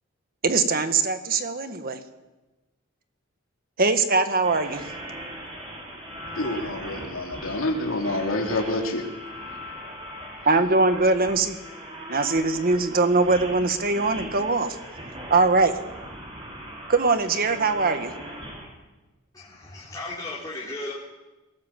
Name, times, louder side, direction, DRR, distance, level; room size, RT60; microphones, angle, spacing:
voice 1, 0.4-2.0 3.8-4.9 10.4-11.6 12.1-14.8 15.3-15.8 16.9-18.1, right 3 dB, 45° right, 8 dB, 1.6 m, -22 dB
sound 1, 4.4-18.7, equal, 30° right, 6.0 m, -39 dB
voice 2, 6.3-9.1, left 1 dB, 75° left, 1 dB, 2.9 m, -27 dB
voice 3, 19.3-20.9, left 2 dB, 20° left, -6 dB, 3.7 m, -35 dB
21.5 x 18.5 x 7.6 m, 1.1 s
head